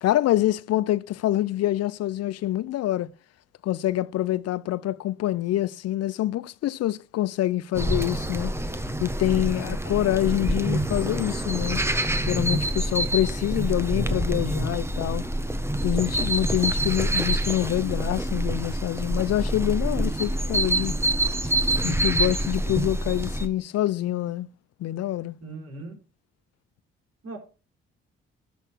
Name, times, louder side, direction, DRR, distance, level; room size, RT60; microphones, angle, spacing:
voice 1, 0.0-3.1 3.6-8.6 9.0-11.8 12.3-15.2 15.8-21.0 21.4-21.5 21.8-24.5 24.8-25.4, left 14 dB, 60° left, 0.6 m, -26 dB
sound 1, 7.7-23.5, right 1 dB, 10° right, 1.3 m, -26 dB
voice 2, 9.2-9.6 25.4-26.0 27.2-27.4, right 2 dB, 55° right, 4.6 m, -39 dB
12.5 x 4.4 x 6.1 m
hypercardioid pair, 50°, 29 cm